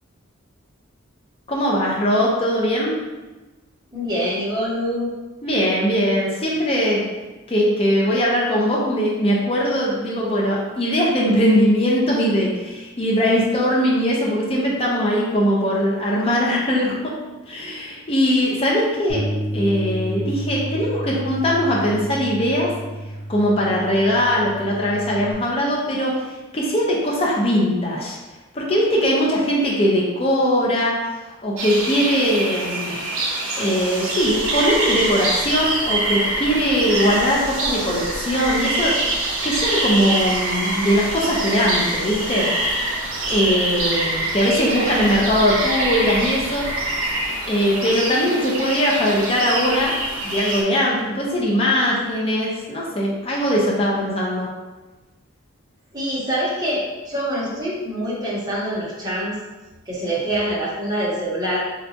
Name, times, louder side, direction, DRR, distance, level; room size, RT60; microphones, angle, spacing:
voice 1, 1.5-2.9 5.4-7.0 7.5-17.1 17.5-22.7 23.3-28.2 28.5-31.2 31.4-33.1 33.6-42.5 43.3-47.0 47.5-49.9 50.2-54.5, equal, 25° left, -4 dB, 0.5 m, -20 dB
voice 2, 3.9-5.1 55.9-59.4 59.9-61.6, equal, 20° right, -7 dB, 0.8 m, -25 dB
Bass guitar, 19.1-25.3, equal, 45° left, 1.0 m, -30 dB
sound 1, 31.6-50.6, right 1 dB, 70° right, 0.7 m, -25 dB
3.9 x 2.2 x 2.7 m, 1.2 s
head